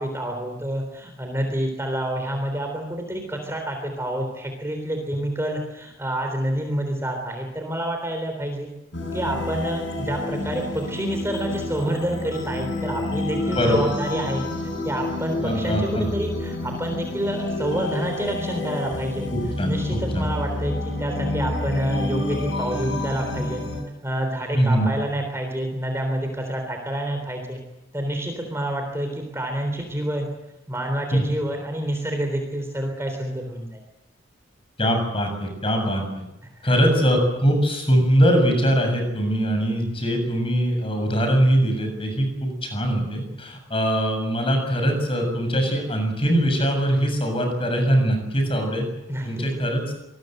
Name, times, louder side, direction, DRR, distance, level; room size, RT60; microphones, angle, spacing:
voice 1, 0.0-8.7 9.1-14.5 14.8-19.3 19.6-23.6 24.0-27.6 27.9-30.3 30.7-33.8 36.6-36.8 49.1-49.5, right 1 dB, 15° right, 3 dB, 3.6 m, -28 dB
sound 1, 8.9-23.8, left 2 dB, 60° left, 7.4 m, -29 dB
voice 2, 15.4-16.1 19.3-20.2 24.5-24.9 34.8-36.2 36.6-48.9 49.2-49.8, equal, 25° left, 4 dB, 7.4 m, -22 dB
27.0 x 20.5 x 7.9 m, 0.92 s
head